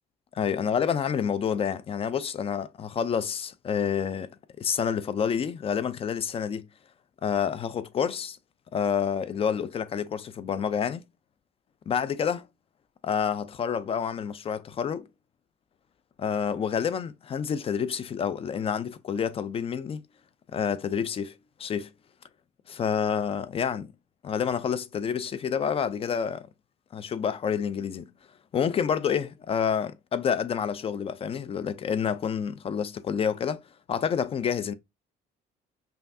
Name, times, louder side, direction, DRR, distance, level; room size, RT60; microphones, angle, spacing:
voice 1, 0.3-6.7 7.2-8.4 8.7-11.0 11.9-12.4 13.0-15.1 16.2-20.0 20.5-21.9 22.7-23.9 24.2-26.5 26.9-28.1 28.5-33.6 33.9-34.7, left 7 dB, 35° left, 0.4 m, -28 dB
5.5 x 2.4 x 2.7 m
cardioid pair, 110°, 17 cm